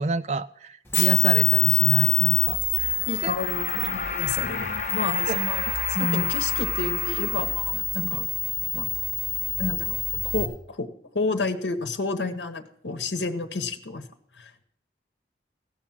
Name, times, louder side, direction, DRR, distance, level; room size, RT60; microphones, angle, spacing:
voice 1, 0.0-3.0 3.2-3.3 5.3-5.4 6.0-6.3 8.1-8.2, right 3 dB, 40° right, 12 dB, 0.4 m, -28 dB
sound 1, 0.9-10.5, left 5 dB, 15° left, 1.6 m, -25 dB
sound 2, 2.9-8.0, left 4 dB, 40° left, 1.0 m, -33 dB
voice 2, 3.1-5.7 6.0-8.3 8.7-8.9 9.6-10.0 10.2-10.9 11.1-14.1 14.4-14.6, left 3 dB, 80° left, 7 dB, 1.0 m, -30 dB
16.0 x 6.0 x 7.3 m, 0.66 s
head